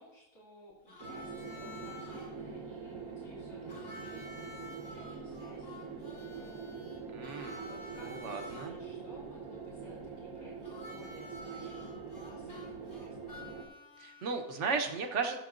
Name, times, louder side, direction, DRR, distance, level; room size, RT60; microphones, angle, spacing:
voice 1, 0.0-6.9 7.5-13.5, equal, 80° left, -6 dB, 3.2 m, -56 dB
Harmonica, 0.9-2.3 3.7-8.7 10.6-14.6, left 1 dB, 55° left, 2.7 m, -50 dB
sound 1, 1.0-13.7, right 5 dB, 75° right, 1.6 m, -44 dB
voice 2, 7.1-7.7 8.0-8.8 14.0-15.4, right 5 dB, 60° right, 5 dB, 1.1 m, -35 dB
14.5 x 6.8 x 2.5 m, 1.0 s
omnidirectional pair, 1.5 m